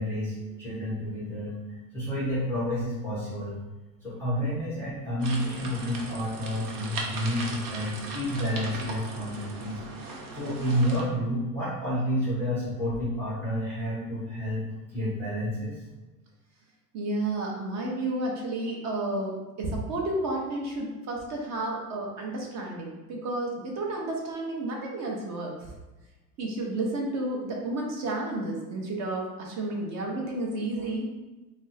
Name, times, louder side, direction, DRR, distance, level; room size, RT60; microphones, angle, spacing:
voice 1, 0.0-3.6 4.0-9.8 10.3-14.6 14.9-15.8, equal, 5° left, -11 dB, 0.3 m, -30 dB
sound 1, 5.2-11.0, right 3 dB, 70° right, 0.8 m, -38 dB
voice 2, 16.9-25.7 26.4-31.0, right 2 dB, 35° right, -1 dB, 0.7 m, -31 dB
2.5 x 2.0 x 3.9 m, 1.1 s
supercardioid pair, 135°, 47 cm